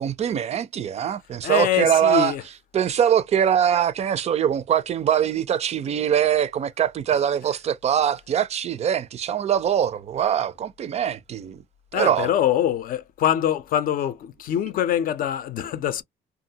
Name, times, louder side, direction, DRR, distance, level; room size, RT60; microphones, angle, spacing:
voice 1, 0.0-2.3 2.7-11.6 11.9-12.3, right 9 dB, 40° right, 0.4 m, -22 dB
voice 2, 1.4-2.4 11.9-16.0, left 10 dB, 55° left, 0.5 m, -24 dB
2.6 x 2.3 x 2.7 m
cardioid pair, 110°, 17 cm